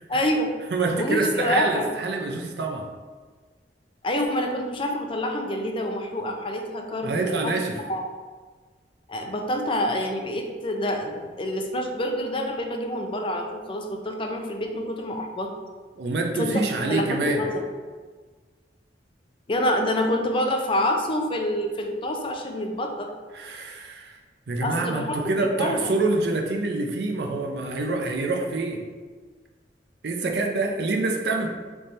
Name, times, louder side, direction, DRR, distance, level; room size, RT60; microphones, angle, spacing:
voice 1, 0.1-0.5 0.9-1.9 4.0-7.5 7.9-8.1 9.1-15.5 16.4-17.6 19.5-23.1 24.6-25.9, left 1 dB, 30° left, 3 dB, 0.5 m, -27 dB
voice 2, 0.7-2.9 7.0-7.8 16.0-17.5 23.3-24.2 24.5-28.8 30.0-31.5, right 3 dB, 65° right, 3 dB, 0.5 m, -26 dB
3.4 x 3.2 x 4.1 m, 1.5 s
head